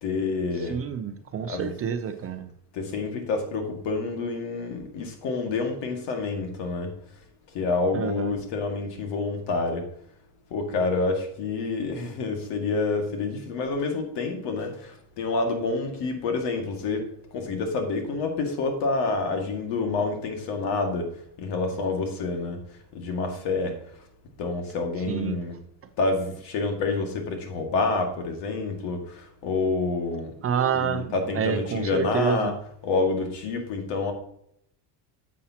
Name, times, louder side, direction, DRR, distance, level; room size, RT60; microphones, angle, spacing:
voice 1, 0.0-0.8 1.5-1.7 2.7-6.9 7.5-9.9 10.5-14.9 15.2-17.1 17.3-21.1 21.4-22.6 22.9-23.8 24.4-25.5 26.0-30.3 30.7-32.5 32.8-34.1, left 3 dB, 65° left, 2.1 m, -28 dB
voice 2, 0.7-2.5 7.9-8.3 25.1-25.4 30.4-32.5, right 7 dB, 30° right, 0.6 m, -28 dB
10.0 x 7.3 x 2.9 m
cardioid pair, 145°, 44 cm